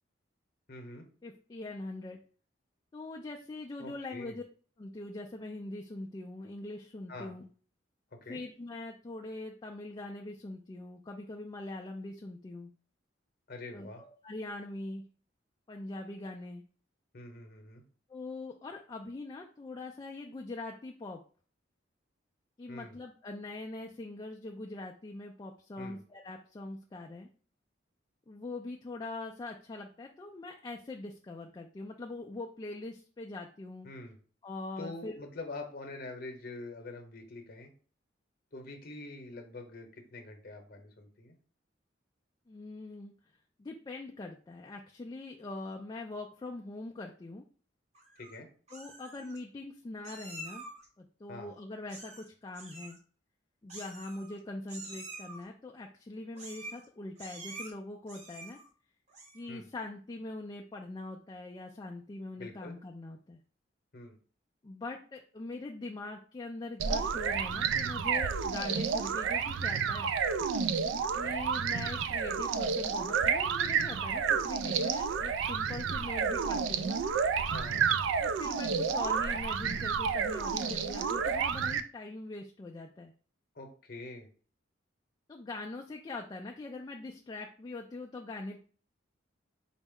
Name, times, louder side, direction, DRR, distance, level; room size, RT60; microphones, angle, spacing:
voice 1, 0.7-1.0 3.8-4.4 7.1-7.3 8.1-8.4 13.5-14.0 17.1-17.8 22.7-22.9 25.8-26.0 33.8-34.2 34.8-37.7 38.5-41.4 48.2-48.5 51.3-51.5 59.5-59.7 62.4-62.8 63.9-64.2 77.5-77.9 83.5-84.3, left 2 dB, 50° left, 4 dB, 0.8 m, -45 dB
voice 2, 1.2-2.2 2.9-4.4 4.8-7.4 8.3-12.7 13.7-15.0 15.7-16.6 18.1-21.2 22.6-27.3 28.3-33.9 34.4-35.1 42.5-43.1 43.6-47.4 48.7-50.7 51.0-53.0 53.6-58.6 59.3-63.4 64.6-70.1 71.1-77.0 78.2-83.1 85.3-88.6, left 2 dB, 20° left, 0 dB, 0.3 m, -42 dB
Meow, 47.9-48.4 48.7-49.4 50.0-50.9 51.9-52.3 52.5-53.0 53.7-54.4 54.7-55.4 56.3-56.9 57.2-57.7 58.1-58.7 59.1-59.5, right 2 dB, 35° right, 0.9 m, -47 dB
sound 1, 66.8-81.8, right 6 dB, 75° right, 0.3 m, -30 dB
4.2 x 2.0 x 3.5 m, 0.41 s
head